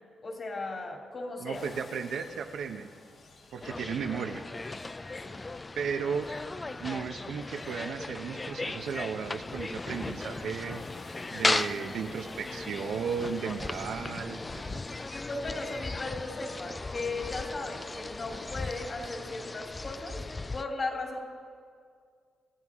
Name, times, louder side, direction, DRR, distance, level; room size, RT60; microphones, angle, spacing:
voice 1, 0.2-1.6 5.1-5.4 15.3-20.2 20.5-21.2, left 3 dB, 45° left, 1 dB, 2.8 m, -36 dB
voice 2, 1.4-2.9 3.5-4.4 5.8-6.3 6.8-10.8 11.3-14.8, right 6 dB, 75° right, 6 dB, 0.9 m, -35 dB
sound 1, 1.5-19.0, left 3 dB, 60° left, 2.1 m, -52 dB
sound 2, 3.6-20.6, left 3 dB, 25° left, 0.3 m, -37 dB
27.5 x 9.4 x 3.7 m, 2.2 s
cardioid pair, 75°, 0 cm